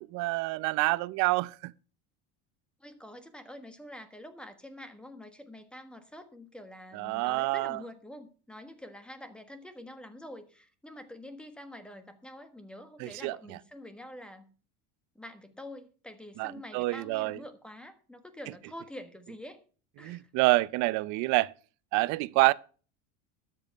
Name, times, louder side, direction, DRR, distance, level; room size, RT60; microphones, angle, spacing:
voice 1, 0.0-1.7 6.9-7.8 13.0-13.6 16.4-17.4 20.0-21.5 21.9-22.5, right 22 dB, 55° right, 0.6 m, -27 dB
voice 2, 2.8-14.5 15.1-19.6 20.0-20.2, left 1 dB, 5° left, 1.4 m, -46 dB
13.0 x 7.5 x 5.4 m
cardioid pair, 155°, 35 cm